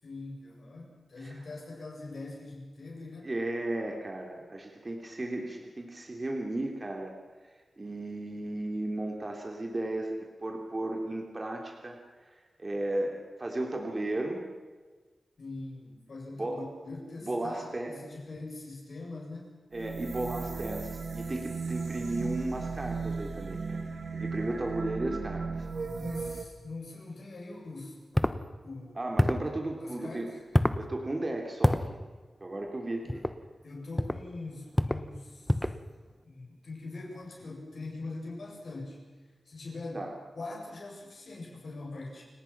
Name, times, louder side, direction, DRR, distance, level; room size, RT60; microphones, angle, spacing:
voice 1, 0.0-3.3 15.4-19.5 26.0-28.0 28.6-29.3 29.8-30.3 33.0-33.3 33.6-35.7 36.2-39.0 39.4-40.1 40.4-42.2, left 2 dB, 60° left, -2 dB, 7.9 m, -42 dB
voice 2, 3.2-7.1 7.8-10.1 10.4-14.4 16.4-16.7 17.2-17.9 19.7-23.8 24.1-25.7 29.0-30.2 30.8-32.0 32.4-33.2 39.9-40.1, right 1 dB, 25° right, 1 dB, 3.0 m, -35 dB
sound 1, 19.7-26.4, right 4 dB, 55° right, 2.3 m, -36 dB
sound 2, 28.1-28.4 29.2-29.5 30.5-30.8 31.6-31.9 33.1-33.4 34.0-34.2 34.7-35.1 35.5-35.8, left 1 dB, 5° left, 0.9 m, -26 dB
29.5 x 19.0 x 6.0 m, 1.3 s
wide cardioid pair, 145°, 0 cm